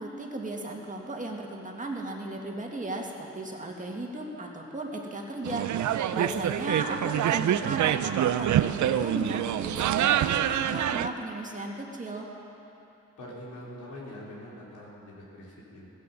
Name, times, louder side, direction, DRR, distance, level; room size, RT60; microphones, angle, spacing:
voice 1, 0.0-12.3, right 2 dB, 25° right, 0 dB, 2.0 m, -36 dB
sound 1, 5.4-11.1, right 11 dB, 75° right, 0.5 m, -26 dB
voice 2, 13.2-16.0, left 1 dB, 85° left, -5 dB, 4.1 m, -44 dB
16.5 x 15.0 x 5.6 m, 2.9 s
cardioid pair, 95°, 30 cm